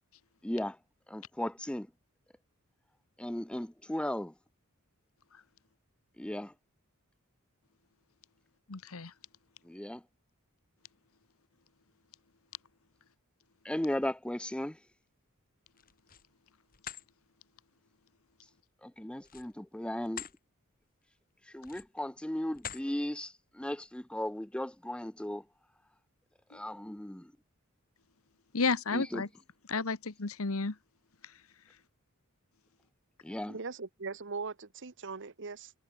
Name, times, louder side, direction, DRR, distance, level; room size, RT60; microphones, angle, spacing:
voice 1, 0.4-0.8 1.1-1.9 3.2-4.3 6.2-6.5 9.7-10.0 13.6-14.8 18.8-20.2 21.5-25.4 26.5-27.3 28.9-29.2 33.2-33.6, left 1 dB, 5° left, 0.5 m, -36 dB
voice 2, 8.7-9.1 28.5-29.3 29.7-30.8, left 4 dB, 75° left, 1.3 m, -32 dB
fall of bag of nails, 15.7-16.3 16.7-17.1 19.2-20.4 20.8-21.0 21.6-22.1 22.5-22.9, left 9 dB, 40° left, 3.4 m, -45 dB
voice 3, 33.3-35.7, right 4 dB, 60° right, 1.2 m, -40 dB
head